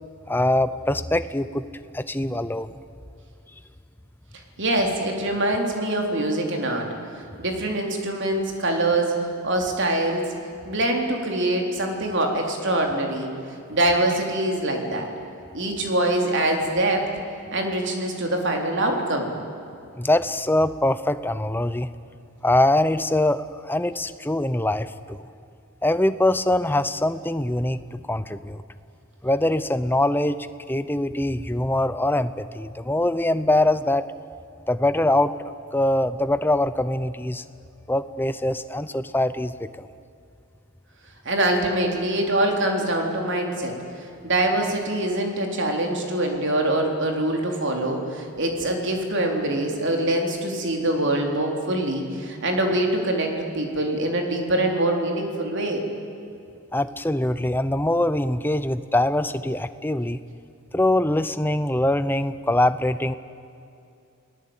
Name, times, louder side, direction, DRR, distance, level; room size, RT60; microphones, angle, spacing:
voice 1, 0.3-1.7 1.9-2.7 20.0-21.9 22.4-25.2 25.8-28.6 29.2-30.4 30.7-34.1 34.7-35.4 35.7-37.4 37.9-39.9 56.7-60.2 60.7-63.1, left 1 dB, 10° left, 13 dB, 0.7 m, -23 dB
voice 2, 4.6-6.9 7.4-9.1 9.4-10.3 10.7-13.3 13.7-15.1 15.5-17.0 17.5-19.3 41.3-43.7 44.0-55.8, right 1 dB, 55° right, 2 dB, 3.7 m, -24 dB
29.5 x 19.0 x 8.9 m, 2.6 s
head